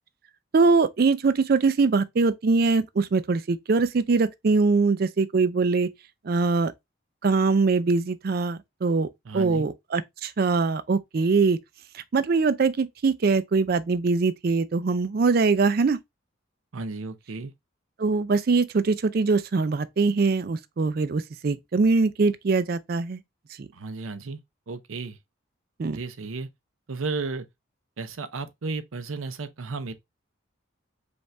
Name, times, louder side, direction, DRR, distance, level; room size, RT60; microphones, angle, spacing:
voice 1, 0.5-5.9 6.2-6.7 7.2-11.6 11.9-16.0 18.0-23.2 23.6-23.7 25.8-26.0, right 4 dB, 45° right, 0.4 m, -22 dB
voice 2, 9.2-9.7 16.7-17.5 23.7-24.4 24.7-25.2 25.9-26.5 26.9-27.5 28.0-29.9, right 3 dB, 85° right, 0.7 m, -33 dB
5.2 x 2.5 x 3.2 m
head